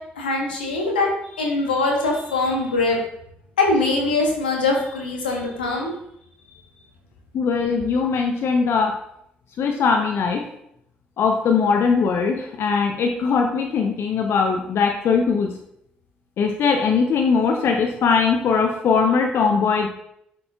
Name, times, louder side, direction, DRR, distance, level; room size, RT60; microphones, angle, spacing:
voice 1, 0.2-3.0 3.6-5.9, left 3 dB, 80° left, 0 dB, 1.1 m, -22 dB
voice 2, 7.3-8.9 9.6-10.4 11.2-15.5 16.4-19.9, left 5 dB, 55° left, 3 dB, 0.7 m, -20 dB
11.5 x 3.9 x 2.4 m, 0.76 s
figure-of-eight pair, 45°, 5 cm